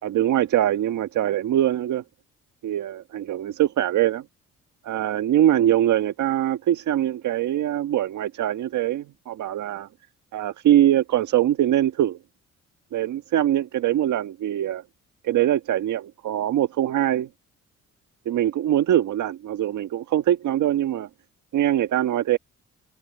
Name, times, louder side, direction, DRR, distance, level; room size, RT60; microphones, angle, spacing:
voice 1, 0.0-2.0 2.6-4.2 4.8-9.9 10.3-12.2 12.9-14.8 15.2-17.3 18.2-21.1 21.5-22.4, right 12 dB, 75° right, 1.6 m, -22 dB
cardioid pair, 90°, 30 cm